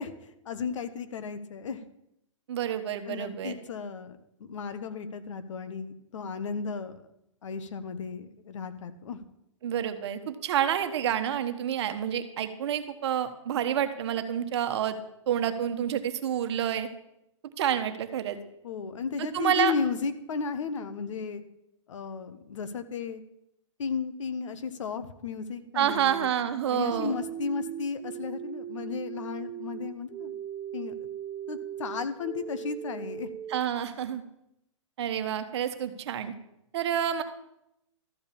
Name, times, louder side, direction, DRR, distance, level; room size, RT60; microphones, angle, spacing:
voice 1, 0.0-1.8 3.1-7.0 7.4-9.2 18.6-21.4 21.9-23.2 23.8-26.3 26.7-30.4 30.7-31.1 31.5-33.3, left 5 dB, 70° left, 11 dB, 1.3 m, -34 dB
voice 2, 2.5-3.6 9.6-15.0 15.3-16.9 17.6-18.4 19.2-19.7 25.7-27.2 33.5-34.2 35.0-36.3 36.7-37.2, right 10 dB, 55° right, 9 dB, 1.3 m, -28 dB
sound 1, 26.9-33.6, right 10 dB, 15° right, 0.5 m, -39 dB
13.0 x 5.4 x 8.5 m, 0.82 s
hypercardioid pair, 140°, 17 cm